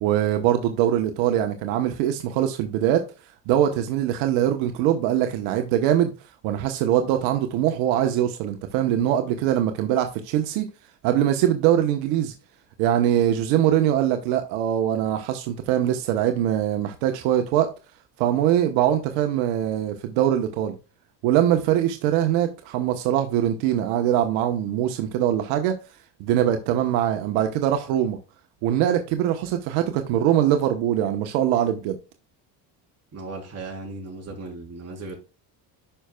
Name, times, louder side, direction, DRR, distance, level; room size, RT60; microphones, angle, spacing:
voice 1, 0.0-3.0 3.5-6.1 6.4-10.7 11.0-12.3 12.8-17.7 18.2-20.7 21.2-25.7 26.2-28.2 28.6-32.0, right 11 dB, 80° right, 1.1 m, -22 dB
voice 2, 33.1-35.1, right 3 dB, 30° right, 3.6 m, -36 dB
10.0 x 5.7 x 2.2 m
cardioid pair, 115°, 47 cm